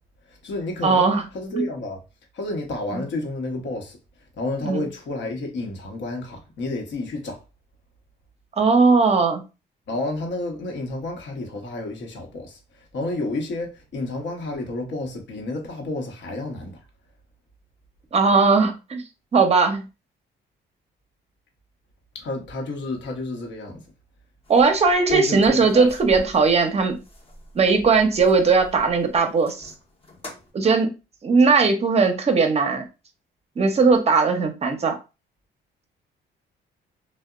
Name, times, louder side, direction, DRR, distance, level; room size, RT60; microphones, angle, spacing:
voice 1, 0.3-1.1 1.3-2.0 2.3-4.0 4.4-7.4 9.9-16.8 22.1-23.8, left 2 dB, 65° left, 0.9 m, -30 dB
voice 2, 0.8-1.2 1.6-1.7 2.9-3.0 4.6-4.9 8.6-9.4 18.1-19.0 19.3-19.8 24.5-27.0 27.5-29.7 30.5-30.9 31.2-32.8 33.6-35.0, right 4 dB, 30° right, 0.6 m, -18 dB
sound 1, 24.6-24.7 24.9-26.6 27.3-27.4 27.6-29.0 29.3-29.7 30.1-30.4, left 1 dB, 30° left, 0.7 m, -33 dB
2.7 x 2.1 x 2.3 m
cardioid pair, 90°, 20 cm